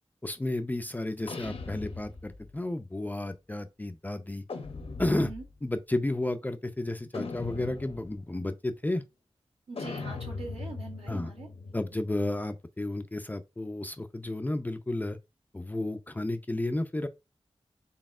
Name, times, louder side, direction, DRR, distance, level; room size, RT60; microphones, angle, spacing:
voice 1, 0.2-4.4 5.0-5.3 5.6-9.0 11.1-11.3 11.7-15.2 15.5-17.1, left 1 dB, 15° left, 0.4 m, -32 dB
sound 1, 1.3-2.6 4.5-5.6 7.1-8.2 9.8-12.4, left 3 dB, 65° left, 0.6 m, -40 dB
voice 2, 5.1-5.4 9.7-11.5, right 3 dB, 75° right, 1.6 m, -42 dB
4.1 x 3.5 x 2.4 m
wide cardioid pair, 95°, 11 cm